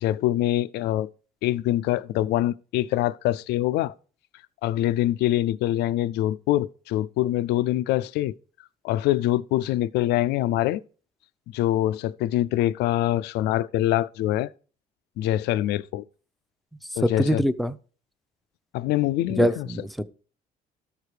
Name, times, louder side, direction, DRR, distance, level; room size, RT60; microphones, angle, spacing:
voice 1, 0.0-1.1 1.4-3.9 4.6-8.3 8.8-10.8 11.5-14.5 15.2-16.0 17.0-17.4 18.7-19.7, left 14 dB, 80° left, 0.4 m, -24 dB
voice 2, 17.0-17.7 19.4-20.0, equal, ahead, 0.6 m, -23 dB
13.0 x 4.7 x 5.0 m
cardioid pair, 110°, 17 cm